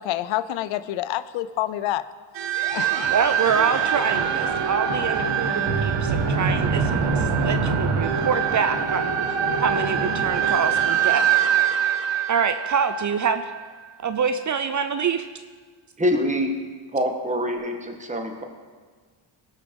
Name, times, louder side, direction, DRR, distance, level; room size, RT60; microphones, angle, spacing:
voice 1, 0.0-2.0 2.7-3.0, left 13 dB, 80° left, 15 dB, 0.6 m, -27 dB
sound 1, 2.3-13.6, right 7 dB, 70° right, 1.5 m, -23 dB
voice 2, 3.1-9.1 9.6-11.2 12.3-13.5 14.0-15.3, right 6 dB, 40° right, 9 dB, 0.6 m, -25 dB
voice 3, 16.0-16.5 16.9-18.4, equal, 15° right, 3 dB, 1.6 m, -25 dB
18.0 x 6.5 x 5.3 m, 1.5 s
cardioid pair, 105°, 45 cm